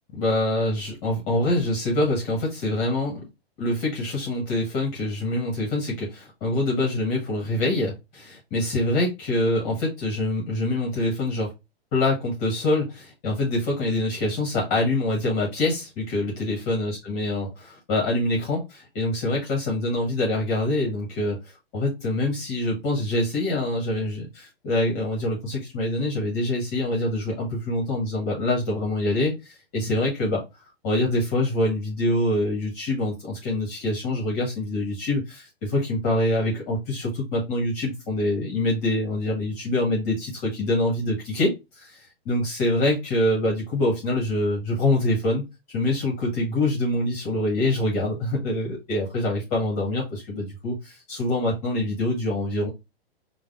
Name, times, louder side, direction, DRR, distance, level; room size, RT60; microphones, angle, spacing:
voice 1, 0.1-3.2 3.6-11.5 11.9-30.4 30.8-45.5 45.7-52.7, left 1 dB, 40° left, 1.1 m, -25 dB
3.3 x 2.1 x 3.6 m
hypercardioid pair, 130°, 31 cm